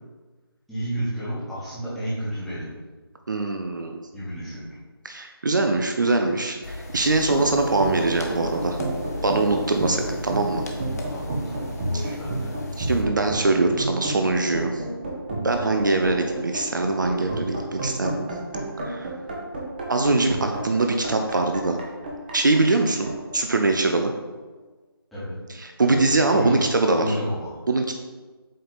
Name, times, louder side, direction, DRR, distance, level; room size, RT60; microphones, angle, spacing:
voice 1, 0.7-2.7 4.1-4.6 9.9-10.0 11.1-12.5 25.1-25.4 25.8-26.6 26.9-27.6, equal, ahead, -13 dB, 1.3 m, -31 dB
voice 2, 3.3-4.0 5.0-8.8 9.2-10.6 12.8-14.8 15.4-18.3 18.8-19.1 19.9-21.8 22.3-24.1 25.6-27.2 27.7-28.0, right 3 dB, 50° right, 4 dB, 0.6 m, -23 dB
sound 1, 6.6-13.0, left 1 dB, 40° left, 0.9 m, -36 dB
sound 2, 7.3-24.1, right 1 dB, 25° right, 0.9 m, -31 dB
7.7 x 3.3 x 4.0 m, 1.3 s
figure-of-eight pair, 160°, 13 cm